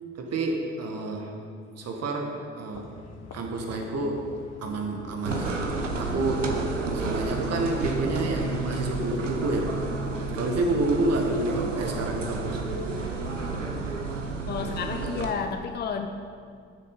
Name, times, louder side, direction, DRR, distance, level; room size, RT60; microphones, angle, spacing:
voice 1, 0.1-1.3 1.7-2.9 3.3-4.3 4.6-5.6 6.0-6.6 6.9-9.7 10.3-12.6, right 2 dB, 45° right, 2 dB, 1.5 m, -29 dB
sound 1, 2.7-14.0, left 3 dB, 45° left, 1.1 m, -48 dB
sound 2, 5.3-15.3, right 3 dB, 85° right, 0.8 m, -31 dB
voice 2, 14.5-16.1, left 6 dB, 25° left, 6 dB, 0.7 m, -31 dB
13.0 x 6.8 x 5.3 m, 2.3 s
figure-of-eight pair, 50°, 36 cm